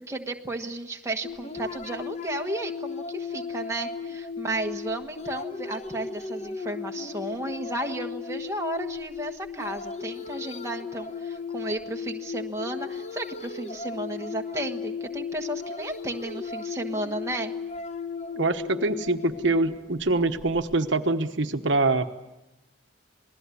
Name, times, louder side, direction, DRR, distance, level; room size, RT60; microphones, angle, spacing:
voice 1, 0.1-17.5, right 1 dB, 15° right, 2 dB, 1.4 m, -33 dB
sound 1, 1.2-20.8, left 5 dB, 35° left, 1.0 m, -36 dB
voice 2, 18.4-22.1, right 2 dB, 60° right, 8 dB, 1.2 m, -24 dB
27.5 x 20.0 x 8.5 m, 0.99 s
head